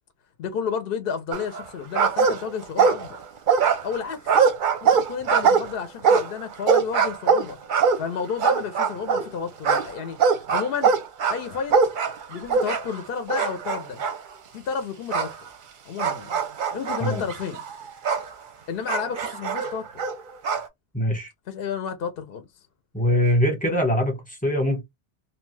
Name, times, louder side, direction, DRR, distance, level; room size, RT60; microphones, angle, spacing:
voice 1, 0.4-3.2 3.8-4.4 4.8-7.6 8.0-10.9 11.3-11.8 12.3-14.0 14.5-15.3 15.8-16.3 16.7-17.6 18.7-20.0 21.5-22.5, left 6 dB, 65° left, 0.7 m, -31 dB
sound 1, 1.3-1.7 1.9-3.2 3.5-9.3 9.6-13.0 13.3-14.2 15.1-15.3 16.0-18.3 18.9-20.7, right 6 dB, 55° right, 0.6 m, -22 dB
voice 2, 20.9-21.3 22.9-24.8, equal, 10° left, 0.8 m, -22 dB
2.7 x 2.2 x 3.1 m
omnidirectional pair, 1.2 m